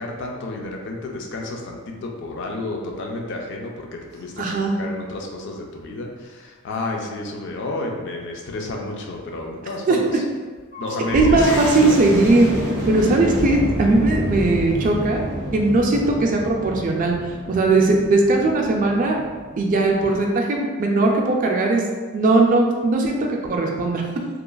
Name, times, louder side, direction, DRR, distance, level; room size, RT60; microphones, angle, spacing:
voice 1, 0.0-10.2 10.8-12.0 13.2-13.4, left 2 dB, 55° left, 1 dB, 0.4 m, -31 dB
Crying sobbing, 4.1-4.2 6.7-6.9 8.5-8.6 9.1-9.2 9.4-9.5 10.6-11.6 12.6-12.9 13.5-13.6, equal, 75° left, 1.1 m, -36 dB
voice 2, 4.4-4.7 9.9-10.0 11.1-12.5 12.9-15.2 15.5-17.1 17.5-19.2 19.6-21.8 22.1-24.0, right 2 dB, 35° right, 1 dB, 0.3 m, -18 dB
sound 1, 11.1-20.3, equal, 15° left, 0.7 m, -29 dB
2.9 x 2.4 x 2.2 m, 1.4 s
head